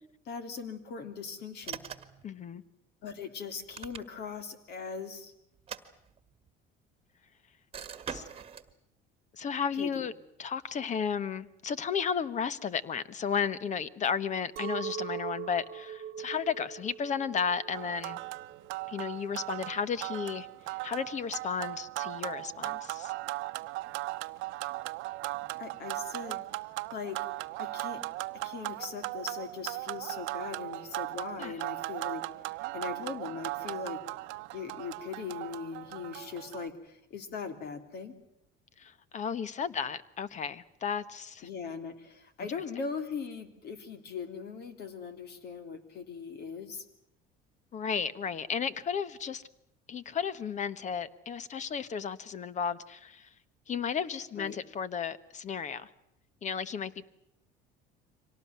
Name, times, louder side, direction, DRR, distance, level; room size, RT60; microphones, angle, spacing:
voice 1, 0.3-1.8 3.0-5.3 9.8-10.0 25.6-26.4 26.9-27.2 27.6-28.0 28.4-32.2 32.7-34.0 34.5-38.1 41.4-46.8 54.3-54.5, left 5 dB, 55° left, 9 dB, 3.2 m, -40 dB
sound 1, 1.6-2.2 3.5-4.4 5.5-6.5 7.7-8.7, right 7 dB, 30° right, 1.6 m, -43 dB
voice 2, 2.2-2.6 8.1-8.3 9.3-10.1 10.4-18.2 18.9-20.5 20.8-23.1 31.4-31.5 38.8-41.5 47.7-49.4 49.9-53.3 53.7-55.9 56.4-57.1, left 6 dB, 35° left, 17 dB, 1.2 m, -33 dB
Chink clink, 14.6-19.7, right 9 dB, 55° right, 1.0 m, -41 dB
sound 2, 17.7-36.7, right 20 dB, 75° right, 0.9 m, -38 dB
25.0 x 18.5 x 9.5 m, 0.78 s
cardioid pair, 120°, 20 cm